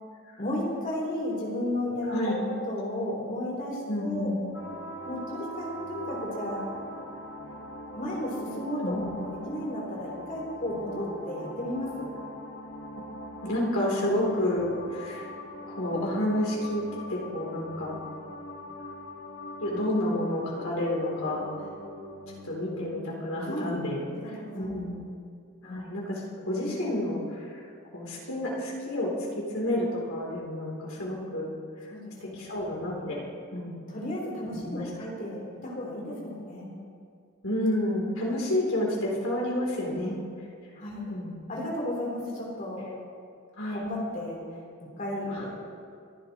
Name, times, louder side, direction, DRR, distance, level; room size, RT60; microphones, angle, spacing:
voice 1, 0.4-4.3 5.0-6.7 7.9-12.1 21.6-21.7 23.5-23.7 24.2-24.7 25.6-25.8 31.0-31.1 31.9-32.4 33.9-36.7 39.9-40.1 40.8-41.1 41.5-42.9 43.7-44.4 44.8-45.6, left 1 dB, 40° left, -4 dB, 3.7 m, -34 dB
voice 2, 2.1-2.4 3.9-4.4 8.8-9.1 13.4-15.3 15.6-18.0 19.6-21.4 22.4-24.0 24.5-25.0 25.6-27.6 27.9-29.1 29.3-31.5 32.2-33.2 33.5-33.8 34.5-34.9 37.4-40.1 41.1-41.3 43.6-43.8 45.3-45.4, left 1 dB, 75° left, -3 dB, 3.3 m, -30 dB
sound 1, 4.5-23.0, left 1 dB, 60° left, 1.5 m, -41 dB
26.0 x 11.5 x 3.1 m, 2.3 s
head